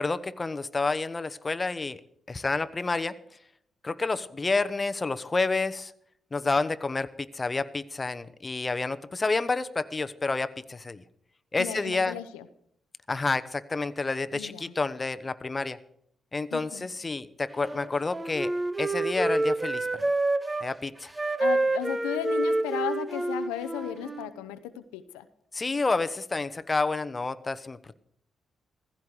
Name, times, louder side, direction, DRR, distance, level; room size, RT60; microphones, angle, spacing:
voice 1, 0.0-2.0 2.3-3.2 3.8-5.9 6.3-11.0 11.5-12.1 13.1-15.8 16.3-18.5 18.8-20.0 20.6-21.1 25.5-28.0, left 3 dB, 30° left, 12 dB, 1.0 m, -29 dB
voice 2, 11.6-12.5 14.3-14.7 16.5-16.9 21.4-25.3, left 12 dB, 85° left, 11 dB, 0.7 m, -35 dB
Wind instrument woodwind instrument, 17.5-20.7 21.1-24.3, right 2 dB, 25° right, 1.4 m, -28 dB
15.5 x 15.5 x 4.8 m, 0.68 s
hypercardioid pair, 45°, 0 cm